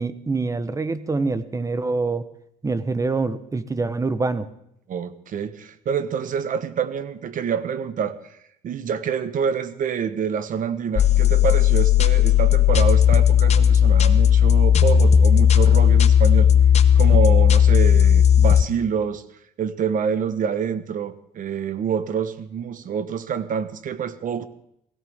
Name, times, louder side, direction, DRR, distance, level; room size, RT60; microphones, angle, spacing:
voice 1, 0.0-2.2 2.6-4.5, right 3 dB, 20° right, 12 dB, 1.0 m, -25 dB
voice 2, 4.9-8.2 8.6-16.5 16.9-19.2 19.6-24.4, right 7 dB, 50° right, 11 dB, 1.3 m, -26 dB
sound 1, 11.0-18.6, left 9 dB, 40° left, 0.9 m, -15 dB
18.0 x 17.0 x 3.7 m, 0.75 s
cardioid pair, 110°, 17 cm